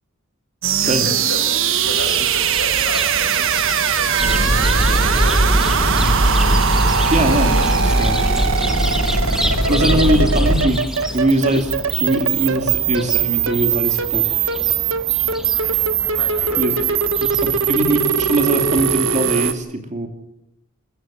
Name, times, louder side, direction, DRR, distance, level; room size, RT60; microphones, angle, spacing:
sound 1, 0.6-19.5, right 7 dB, 60° right, 1.4 m, -20 dB
voice 1, 0.8-6.2 7.4-8.3 9.5-10.5 11.1-11.3 16.1-17.0, left 2 dB, 65° left, 3 dB, 6.7 m, -33 dB
Chirp tweet, 1.8-19.0, equal, ahead, 1.2 m, -31 dB
sound 2, 4.2-10.6, equal, 45° left, 6.6 m, -19 dB
voice 2, 7.1-7.6 8.0-8.1 9.7-10.8 11.1-11.7 12.0-14.4 16.6-16.7 17.4-20.1, right 1 dB, 30° right, 6 dB, 2.4 m, -21 dB
27.5 x 14.5 x 7.6 m, 0.83 s
head